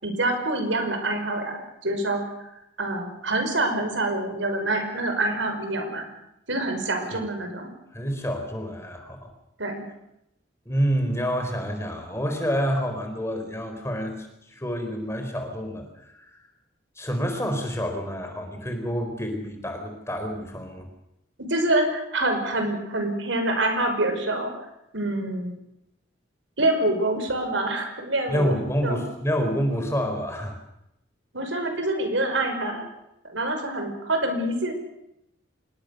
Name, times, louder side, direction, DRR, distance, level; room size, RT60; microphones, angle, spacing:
voice 1, 0.0-6.1 6.5-7.7 9.6-9.8 21.5-24.5 24.9-25.5 26.6-28.5 28.8-29.0 31.3-32.8 33.2-34.7, right 2 dB, 85° right, 5 dB, 5.7 m, -26 dB
voice 2, 7.9-9.3 10.7-16.4 17.0-20.9 28.3-30.6, equal, 15° left, 5 dB, 4.3 m, -28 dB
26.0 x 21.0 x 6.8 m, 0.82 s
head